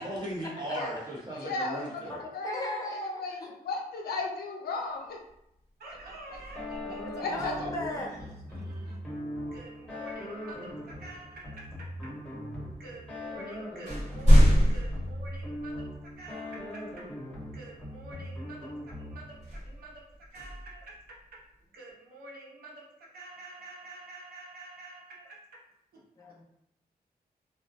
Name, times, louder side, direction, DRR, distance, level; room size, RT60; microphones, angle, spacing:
voice 1, 0.0-2.2, right 1 dB, 30° right, -6 dB, 0.9 m, -37 dB
voice 2, 1.3-2.0 2.3-3.4 3.6-5.2 7.0-7.9, left 3 dB, 85° left, 1 dB, 0.4 m, -35 dB
voice 3, 2.1-3.5 7.3-8.1 26.2-26.4, left 1 dB, 25° left, -1 dB, 0.6 m, -36 dB
sound 1, 5.3-5.5 5.9-8.0 10.1-10.3 11.1-11.9 12.8-12.9 13.3-16.1 16.6-16.7 19.3-21.5, equal, 50° right, 1.4 m, -27 dB
voice 4, 5.8-7.2 7.5-9.0 9.5-12.1 12.8-15.7 16.2-17.0 17.5-20.1 20.3-21.2 21.7-25.6 25.9-26.0, right 2 dB, 85° right, -3 dB, 0.7 m, -47 dB
sound 2, 6.5-19.4, left 1 dB, 10° left, 1.2 m, -40 dB
2.2 x 2.2 x 2.5 m, 0.80 s
cardioid pair, 90°, 15 cm